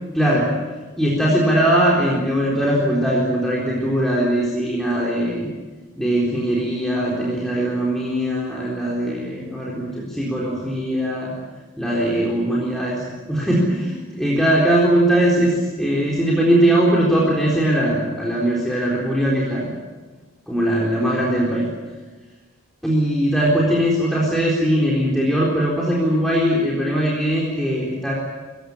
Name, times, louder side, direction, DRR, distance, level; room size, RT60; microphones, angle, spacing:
voice 1, 0.1-0.5 1.0-5.5 6.0-11.3 11.8-19.7 20.5-21.7 22.8-28.1, right 1 dB, ahead, -5 dB, 3.9 m, -20 dB
24.0 x 16.0 x 9.9 m, 1.3 s
head